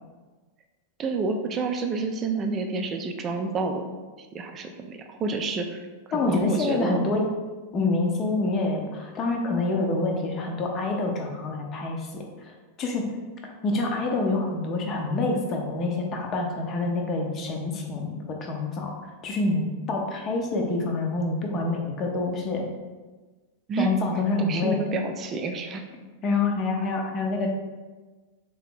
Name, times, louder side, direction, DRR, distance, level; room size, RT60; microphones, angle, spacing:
voice 1, 1.0-3.9 4.3-5.8 6.1-7.1 23.7-23.9 24.4-25.8, right 4 dB, 25° right, 5 dB, 0.4 m, -29 dB
voice 2, 6.1-7.3 7.7-13.1 13.6-18.9 19.2-22.7 23.8-24.8 26.2-27.5, left 3 dB, 30° left, 1 dB, 0.7 m, -27 dB
3.6 x 2.9 x 3.7 m, 1.3 s
figure-of-eight pair, 90°, 0 cm